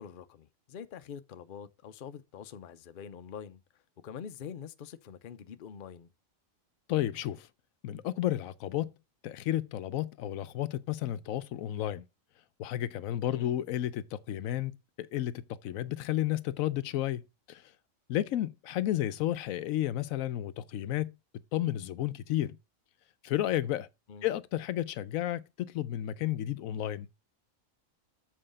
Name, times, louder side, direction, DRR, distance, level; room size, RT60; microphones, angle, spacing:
voice 1, 0.0-6.1 13.3-13.5 24.1-24.3, left 7 dB, 50° left, 0.7 m, -45 dB
voice 2, 6.9-7.5 7.8-8.9 9.2-12.0 12.6-17.2 17.5-17.6 18.1-21.1 21.5-22.6 23.2-23.9 24.2-27.1, left 13 dB, 85° left, 1.0 m, -32 dB
7.7 x 4.8 x 5.0 m
omnidirectional pair, 1.4 m